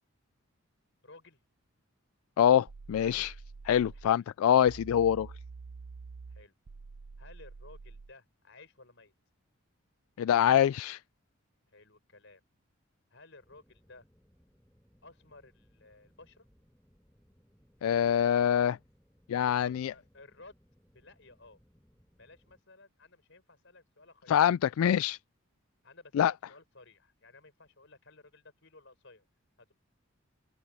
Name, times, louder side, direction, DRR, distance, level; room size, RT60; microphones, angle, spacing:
voice 1, 1.0-1.4 3.9-4.3 6.3-6.5 7.2-9.1 11.7-12.4 13.1-14.1 15.0-16.5 19.3-20.6 20.8-21.6 22.1-24.7 25.8-29.3 29.6-29.7, left 3 dB, 60° left, 6.1 m, -56 dB
voice 2, 2.4-3.4 3.6-5.3 10.2-11.0 17.8-18.8 19.3-19.9 24.3-25.2 26.1-26.3, left 9 dB, 85° left, 0.3 m, -25 dB
sound 1, 2.7-4.1 4.7-8.1, right 4 dB, 65° right, 0.5 m, -47 dB
sound 2, 13.4-22.6, equal, 10° left, 7.3 m, -66 dB
open air
head